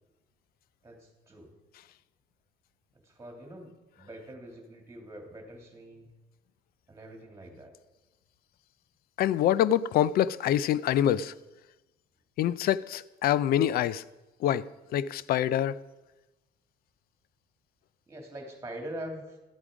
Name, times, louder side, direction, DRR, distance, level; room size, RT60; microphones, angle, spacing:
voice 1, 0.8-1.5 2.9-6.1 6.9-7.7 18.1-19.4, right 1 dB, 15° right, 2.6 m, -44 dB
voice 2, 9.2-11.3 12.4-14.0 14.4-14.7 14.9-15.8, left 11 dB, 65° left, 0.5 m, -25 dB
13.0 x 8.6 x 5.0 m
cardioid pair, 110°, 17 cm